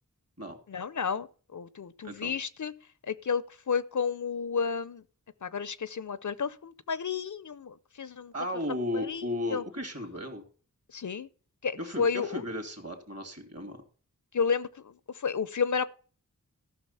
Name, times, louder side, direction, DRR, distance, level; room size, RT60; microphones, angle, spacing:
voice 1, 0.7-2.7 3.1-5.0 5.4-8.3 8.9-9.2 9.5-9.6 10.9-11.3 11.6-12.4 14.3-15.8, left 6 dB, 60° left, 0.6 m, -31 dB
voice 2, 8.3-10.4 11.8-13.8, left 1 dB, 45° right, 2.7 m, -35 dB
14.0 x 6.0 x 5.6 m
wide cardioid pair, 75°, 34 cm